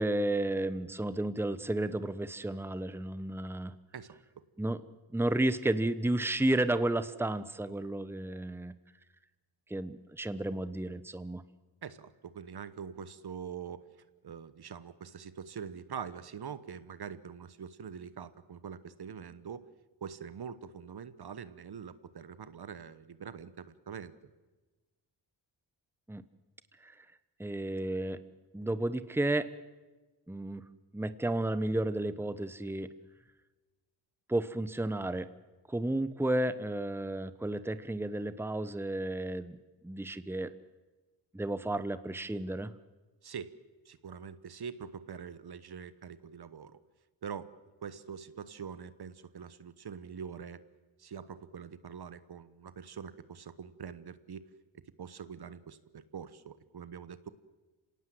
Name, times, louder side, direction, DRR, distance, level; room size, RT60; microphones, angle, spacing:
voice 1, 0.0-3.7 4.6-4.8 5.1-8.7 9.7-11.4 26.1-26.2 26.8-26.9 27.4-28.2 28.5-29.5 30.3-30.6 30.9-32.9 34.3-35.3 35.7-39.6 39.8-40.5 41.3-42.7, right 1 dB, 5° right, 13 dB, 1.1 m, -32 dB
voice 2, 3.9-4.4 11.8-13.8 14.2-19.7 20.0-24.1 43.2-43.5 43.8-46.8 47.2-47.5 47.8-50.6 51.0-54.5 55.0-57.3, right 7 dB, 55° right, 14 dB, 1.2 m, -44 dB
26.0 x 18.0 x 7.9 m, 1.2 s
cardioid pair, 65°, 46 cm